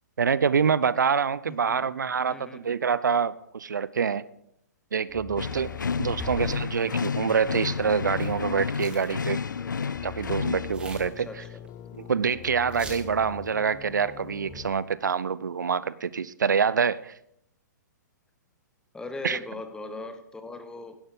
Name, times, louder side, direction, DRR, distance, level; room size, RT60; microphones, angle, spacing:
voice 1, 0.2-4.2 4.9-5.7 6.0-9.4 10.0-11.3 12.1-17.1 19.2-19.4, right 6 dB, 75° right, 18 dB, 0.5 m, -26 dB
voice 2, 1.5-1.9 2.3-2.6 6.2-6.3 11.2-11.6 18.9-21.0, left 2 dB, 5° left, 9 dB, 1.0 m, -39 dB
sound 1, 5.1-14.7, left 13 dB, 30° left, 0.5 m, -43 dB
sound 2, 5.4-10.7, left 6 dB, 80° left, 0.4 m, -31 dB
sound 3, 5.5-5.8 6.2-8.5 8.7-9.1 9.4-9.9 10.3-11.7 11.9-12.0 12.4-12.5 12.7-13.2 14.4-14.8, right 1 dB, 10° right, 1.9 m, -42 dB
11.5 x 11.5 x 3.8 m, 0.74 s
figure-of-eight pair, 115°, 10 cm